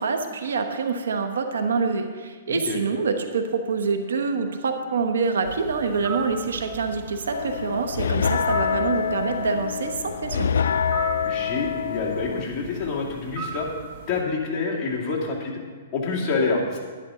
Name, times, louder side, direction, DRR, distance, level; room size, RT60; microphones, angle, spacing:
voice 1, 0.0-10.5, right 4 dB, 85° right, 6 dB, 1.1 m, -26 dB
voice 2, 2.5-2.8 11.2-13.7 14.1-15.6 15.9-16.8, left 4 dB, 20° left, -6 dB, 2.4 m, -27 dB
sound 1, 5.4-14.2, right 5 dB, 50° right, 1.5 m, -38 dB
sound 2, 7.3-12.4, left 7 dB, 80° left, 0.3 m, -26 dB
11.5 x 11.0 x 3.8 m, 1.5 s
hypercardioid pair, 150°, 0 cm